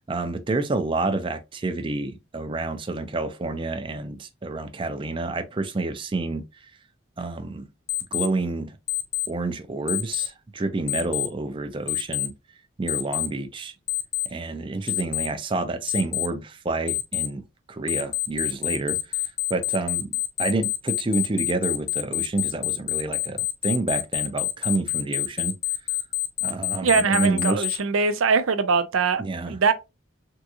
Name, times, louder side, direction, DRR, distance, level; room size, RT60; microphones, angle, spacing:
voice 1, 0.1-6.4 7.2-7.6 8.1-8.8 9.3-12.3 12.8-13.7 14.3-17.4 17.7-19.2 19.5-25.6 26.4-27.7 29.2-29.5, right 2 dB, 25° right, 0.4 m, -28 dB
Alarm, 7.9-8.3 8.9-9.3 9.9-10.3 10.9-11.3 11.9-12.3 12.9-13.3 13.9-14.3 14.9-15.3 15.9-16.3 16.9-17.3 17.9-27.8, left 18 dB, 50° left, 0.5 m, -26 dB
voice 2, 26.8-29.2 29.5-29.7, right 5 dB, 80° right, 0.5 m, -22 dB
3.6 x 2.5 x 2.8 m
head